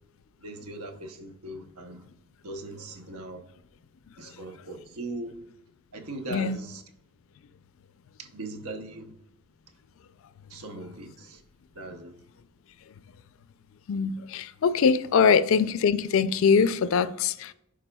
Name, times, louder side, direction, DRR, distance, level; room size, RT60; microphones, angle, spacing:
voice 1, 0.4-2.0 2.4-3.4 4.2-5.4 5.9-6.8 8.2-9.1 10.5-11.4 11.7-12.1, right 2 dB, 80° right, 0.8 m, -39 dB
voice 2, 6.3-6.6 13.9-17.5, left 6 dB, 65° left, 0.4 m, -23 dB
11.5 x 4.8 x 2.2 m
head